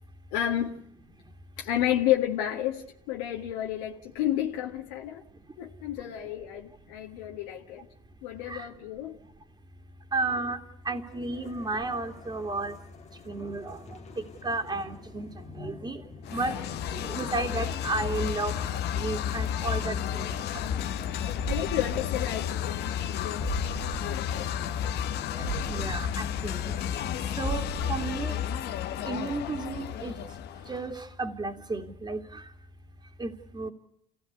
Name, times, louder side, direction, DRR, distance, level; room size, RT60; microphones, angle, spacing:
voice 1, 0.3-0.8 1.6-5.2 5.6-7.9 8.2-9.2 21.5-23.5 24.0-24.5, left 12 dB, 85° left, 1.9 m, -31 dB
voice 2, 10.1-10.6 10.8-12.8 13.3-16.0 16.3-20.3 20.7-20.8 25.3-26.7 27.4-28.4 29.0-30.1 30.7-32.5 33.2-33.7, right 3 dB, 20° right, 2.7 m, -33 dB
sound 1, 11.0-28.2, left 4 dB, 35° left, 2.5 m, -47 dB
sound 2, 16.2-30.9, left 9 dB, 60° left, 1.4 m, -32 dB
sound 3, 21.4-22.8 23.1-23.2 23.4-24.8 25.1-25.2 25.4-27.1 27.4-28.8 29.1-29.2, right 5 dB, 85° right, 4.5 m, -38 dB
28.0 x 17.0 x 8.3 m
supercardioid pair, 90°, 19 cm